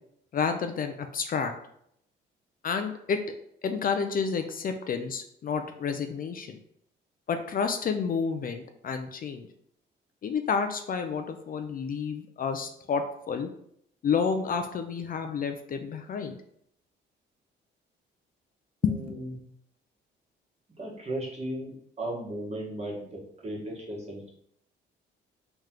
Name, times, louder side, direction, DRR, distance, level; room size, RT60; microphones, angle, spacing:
voice 1, 0.3-1.5 2.6-3.2 3.6-6.6 7.3-9.5 10.2-13.5 14.0-16.4 18.8-19.1, left 6 dB, 45° left, 7 dB, 0.4 m, -30 dB
voice 2, 18.8-19.3 20.8-24.3, right 1 dB, 35° right, -4 dB, 1.5 m, -36 dB
3.3 x 3.0 x 3.7 m, 0.70 s
cardioid pair, 90°, 20 cm